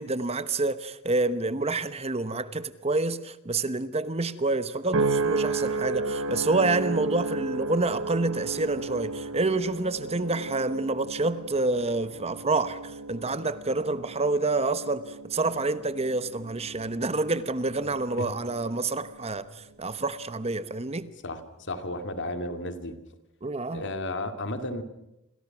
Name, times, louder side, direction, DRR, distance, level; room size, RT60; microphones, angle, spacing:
voice 1, 0.0-21.1 23.4-23.9, right 3 dB, 30° right, 1.0 m, -28 dB
sound 1, 4.9-19.4 19.9-20.4, right 3 dB, 85° right, 1.4 m, -34 dB
voice 2, 21.7-23.0 23.7-24.8, left 1 dB, 55° left, 2.7 m, -33 dB
29.5 x 25.5 x 6.1 m
head